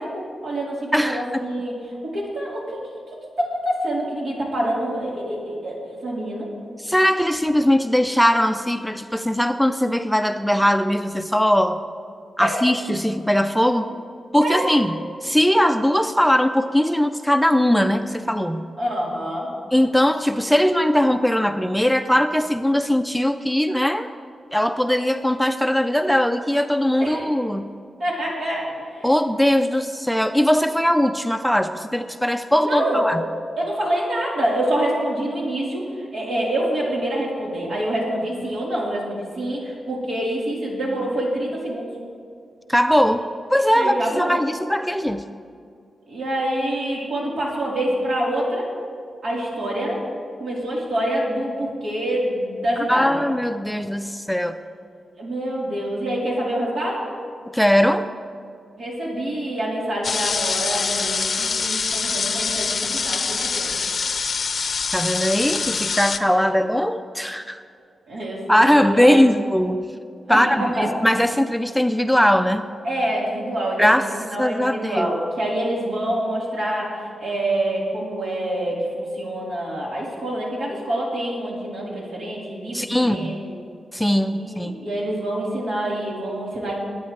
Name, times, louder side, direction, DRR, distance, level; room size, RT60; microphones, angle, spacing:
voice 1, 0.0-1.8 2.0-2.8 3.4-6.5 12.4-12.5 14.4-14.7 18.8-19.5 27.0-27.2 28.0-29.1 32.6-33.1 33.6-41.9 43.8-44.4 46.1-48.7 49.2-53.1 55.2-57.0 58.8-63.7 68.1-69.3 70.3-70.9 72.8-74.0 74.3-76.9 77.2-83.5 84.3-86.7, right 1 dB, 80° right, -5 dB, 3.8 m, -26 dB
voice 2, 0.9-1.4 6.8-11.8 12.4-13.9 14.3-18.7 19.7-24.1 24.5-27.7 29.0-33.2 42.7-45.2 52.9-54.6 57.5-58.1 64.9-67.6 68.5-69.9 70.3-72.7 73.8-74.1 74.4-75.1 82.7-83.4 83.9-84.8, equal, ahead, 8 dB, 0.4 m, -20 dB
sound 1, 60.0-66.2, left 5 dB, 55° left, 0.6 m, -25 dB
21.5 x 9.5 x 3.3 m, 2.3 s
wide cardioid pair, 110°, 0 cm